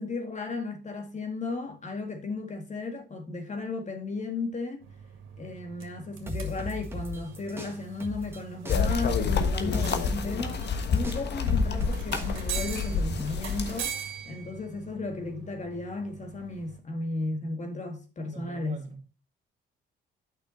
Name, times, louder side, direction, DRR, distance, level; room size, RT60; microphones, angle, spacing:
voice 1, 0.0-4.8 5.4-14.0 14.3-18.8, left 3 dB, 35° left, 2.0 m, -35 dB
sound 1, 4.8-16.8, right 8 dB, 80° right, 2.0 m, -42 dB
sound 2, 6.3-8.4 8.6-13.2, left 1 dB, 10° right, 1.6 m, -37 dB
sound 3, 8.7-13.8, left 5 dB, 60° left, 1.4 m, -28 dB
voice 2, 18.3-19.1, right 3 dB, 40° right, 2.2 m, -43 dB
8.7 x 6.0 x 4.3 m
cardioid pair, 90°, 20 cm